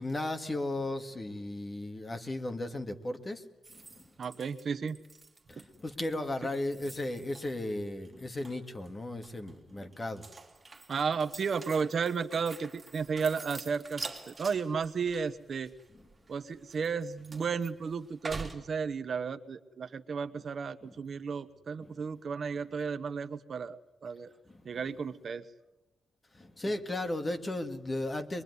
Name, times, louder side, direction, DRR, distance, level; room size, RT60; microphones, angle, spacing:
voice 1, 0.0-3.4 3.9-4.0 5.5-10.3 20.8-20.9 21.8-21.9 24.5-24.7 26.3-28.4, left 1 dB, 20° left, 7 dB, 2.0 m, -35 dB
sound 1, 3.6-7.7 8.0-8.9 9.2-18.6, right 3 dB, 20° right, 3.1 m, -46 dB
voice 2, 4.2-5.0 10.9-15.7 16.3-24.3 24.6-25.5, right 5 dB, 50° right, 11 dB, 1.0 m, -33 dB
23.5 x 23.0 x 9.6 m, 0.97 s
wide cardioid pair, 145°, 0 cm